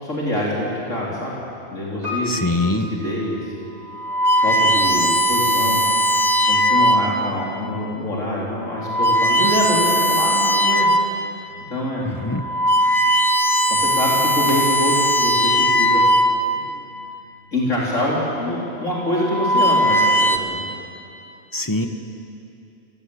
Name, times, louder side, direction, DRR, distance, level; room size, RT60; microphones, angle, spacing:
voice 1, 0.0-1.3 1.7-3.4 4.4-5.8 6.5-10.9 11.7-12.1 13.7-16.1 17.5-20.7, left 1 dB, 75° left, -5 dB, 3.9 m, -25 dB
Piano, 2.0-4.1 4.3-4.4, left 2 dB, 30° right, 4.3 m, -33 dB
voice 2, 2.3-2.9 12.0-12.4 21.5-21.9, left 2 dB, 15° left, 6 dB, 1.2 m, -23 dB
sound 1, 3.0-3.3 3.9-7.3 8.0-8.2 8.7-11.2 11.7-11.8 12.3-16.8 17.8-18.2 19.0-20.4, equal, 55° left, 1.6 m, -19 dB
28.5 x 16.0 x 8.4 m, 2.7 s
omnidirectional pair, 1.3 m